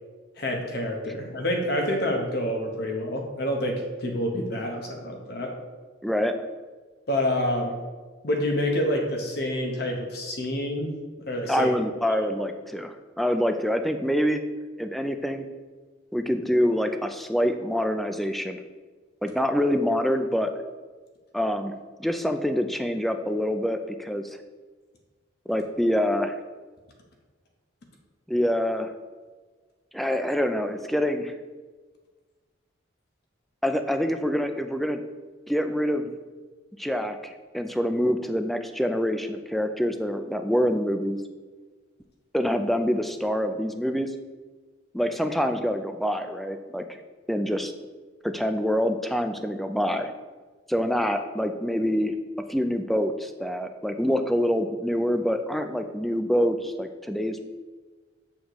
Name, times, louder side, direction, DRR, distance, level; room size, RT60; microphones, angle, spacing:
voice 1, 0.4-5.6 7.1-7.8 8.2-11.7, left 1 dB, 55° left, 1 dB, 0.9 m, -28 dB
voice 2, 6.0-6.4 11.5-14.4 14.8-15.5 16.1-18.6 19.2-20.5 21.3-21.7 22.0-24.4 25.5-26.4 28.3-28.9 29.9-31.3 33.6-35.0 35.5-36.1 36.8-41.2 42.3-44.1 44.9-47.0 47.3-47.7 48.2-50.1 50.7-52.2 52.5-57.4, equal, ahead, 7 dB, 0.3 m, -26 dB
7.2 x 6.4 x 3.0 m, 1.4 s
head